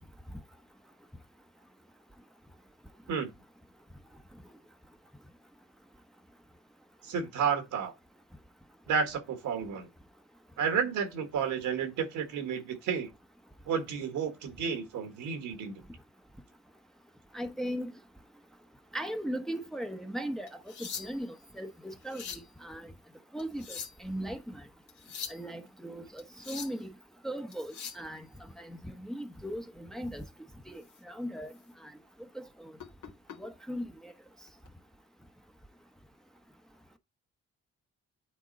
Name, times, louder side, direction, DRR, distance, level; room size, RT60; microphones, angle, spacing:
voice 1, 7.0-7.9 8.9-9.9 10.6-13.1 13.7-15.8, right 6 dB, 85° right, 1.7 m, -31 dB
voice 2, 17.3-17.9 18.9-20.5 20.8-22.9 23.3-24.6 25.3-26.9 27.2-28.2 28.6-30.2 30.7-31.5 31.8-31.9 32.3-32.7 33.4-34.1, equal, ahead, 0.9 m, -38 dB
sound 1, 20.5-21.4 21.9-22.5 23.4-24.1 24.9-25.4 26.2-26.8 27.5-28.1 30.1-30.3 30.8-31.0 31.5-31.6 32.8-33.4 34.5-34.7, left 6 dB, 75° left, 1.7 m, -42 dB
8.7 x 3.7 x 4.1 m
cardioid pair, 90°, 30 cm